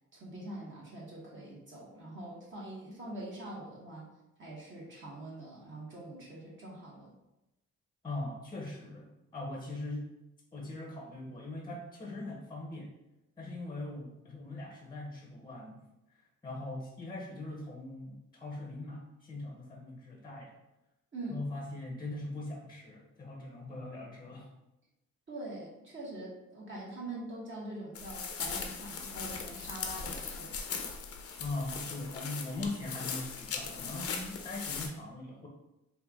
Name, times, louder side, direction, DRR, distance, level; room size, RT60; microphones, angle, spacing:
voice 1, 0.1-4.1 4.4-7.1 21.1-21.4 25.3-30.5, right 1 dB, 40° right, -5 dB, 1.2 m, -44 dB
voice 2, 8.0-10.0 10.5-12.9 13.4-15.8 16.4-20.5 21.3-24.5 30.0-30.1 31.4-35.5, left 2 dB, 15° left, -2 dB, 0.7 m, -41 dB
sound 1, 27.9-34.9, left 5 dB, 50° left, 0.6 m, -39 dB
3.3 x 2.4 x 3.5 m, 0.94 s
cardioid pair, 90°, 30 cm